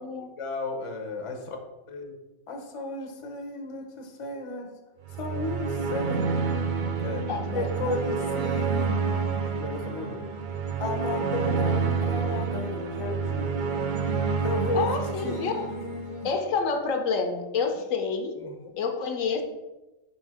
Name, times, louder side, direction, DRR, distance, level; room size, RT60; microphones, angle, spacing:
voice 1, 0.4-1.6 1.9-2.1 2.5-4.7 5.1-6.5 7.0-7.3 7.5-9.1 9.6-10.3 10.8-13.7 14.4-16.3 18.4-18.7, left 2 dB, 30° left, 4 dB, 0.7 m, -34 dB
sound 1, 5.0-16.4, right 5 dB, 55° right, 0.5 m, -29 dB
voice 2, 7.3-8.0 14.7-15.6 16.2-18.4 18.8-19.4, left 5 dB, 75° left, 5 dB, 1.1 m, -28 dB
5.0 x 4.3 x 4.7 m, 1.1 s
omnidirectional pair, 1.4 m